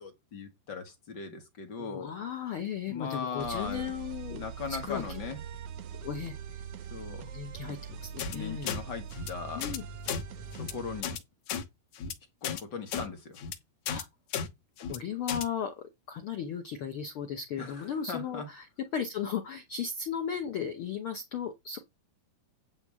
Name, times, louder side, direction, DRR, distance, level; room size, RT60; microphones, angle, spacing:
voice 1, 0.0-2.1 2.9-3.9 4.3-5.4 6.9-7.3 8.3-9.7 10.6-11.2 12.4-13.4 17.6-18.5, left 5 dB, 45° left, 1.4 m, -39 dB
voice 2, 1.8-4.4 4.8-5.0 6.0-6.6 7.3-8.8 9.5-9.8 13.9-14.1 14.8-18.6 18.9-21.8, left 7 dB, 80° left, 1.2 m, -36 dB
sound 1, 3.4-11.0, right 7 dB, 85° right, 1.3 m, -42 dB
sound 2, 8.2-8.4 8.7-8.8 9.1-9.3 9.6-9.8 10.0-10.2 10.5-10.7 11.0-11.2 11.5-11.6 11.9-12.1 12.4-12.6 12.9-13.0 13.4-13.6 13.9-14.0 14.3-14.5 14.8-15.0 15.3-15.4, left 7 dB, 65° left, 2.1 m, -34 dB
10.5 x 3.8 x 7.4 m
omnidirectional pair, 4.1 m